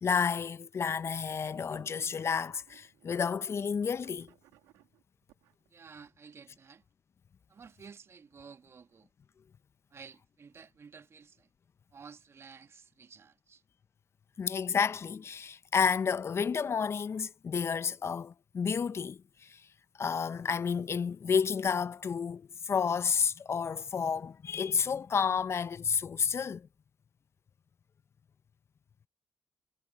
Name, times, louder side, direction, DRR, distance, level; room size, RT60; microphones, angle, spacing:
voice 1, 0.0-4.3 14.4-19.6 20.0-26.7, left 6 dB, 50° left, 0.7 m, -31 dB
sound 1, 0.9-3.1 3.4-5.7, right 17 dB, 90° right, 2.5 m, -63 dB
voice 2, 5.7-6.8 7.5-9.1 9.9-11.5 11.9-13.6, right 5 dB, 50° right, 2.3 m, -52 dB
hypercardioid pair, 45°, 6 cm